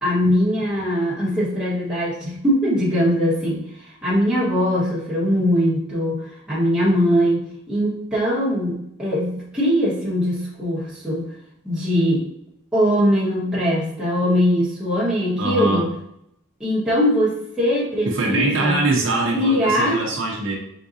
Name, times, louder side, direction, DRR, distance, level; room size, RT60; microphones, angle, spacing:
voice 1, 0.0-3.6 4.0-6.2 6.5-11.2 11.6-12.2 12.7-15.9 16.6-18.8 19.3-20.0, equal, 5° right, -9 dB, 1.5 m, -21 dB
voice 2, 15.4-15.8 18.0-20.5, right 2 dB, 65° right, -1 dB, 0.8 m, -22 dB
4.6 x 3.8 x 2.7 m, 0.75 s
head